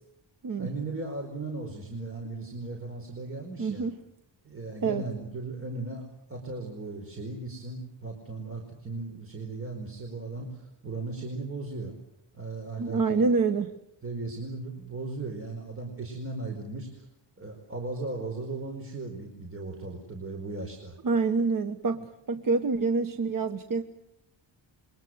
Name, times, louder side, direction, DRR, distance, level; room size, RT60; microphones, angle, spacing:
voice 1, 0.6-3.8 4.4-6.0 6.3-11.9 12.3-13.0 14.0-17.1 17.4-21.0, right 3 dB, 30° right, 2 dB, 4.8 m, -37 dB
voice 2, 3.6-4.0 4.8-5.0 12.8-13.7 21.0-23.8, right 4 dB, 45° right, 9 dB, 1.3 m, -26 dB
28.0 x 24.0 x 8.0 m, 0.78 s
wide cardioid pair, 150°, 46 cm